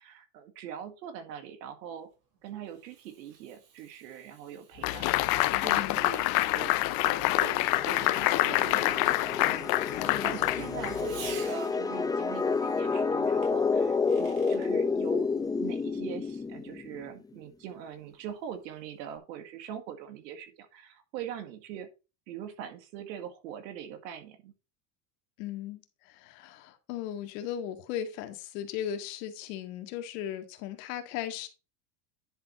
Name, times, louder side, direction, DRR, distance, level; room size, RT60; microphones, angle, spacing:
voice 1, 0.0-2.1 2.4-5.1 5.5-9.7 10.0-15.3 15.6-21.9 22.3-24.5, right 9 dB, 85° right, 8 dB, 1.9 m, -42 dB
Fireworks, 2.1-12.0 13.4-14.7, right 6 dB, 65° right, 3.6 m, -52 dB
sound 1, 4.8-11.3, left 18 dB, 45° left, 0.7 m, -27 dB
voice 2, 5.6-6.0 10.0-10.7 25.4-31.5, left 10 dB, 70° left, 7 dB, 1.9 m, -37 dB
sound 2, 6.6-17.1, left 4 dB, 10° left, 0.5 m, -30 dB
10.5 x 4.3 x 4.0 m, 0.30 s
supercardioid pair, 125°, 49 cm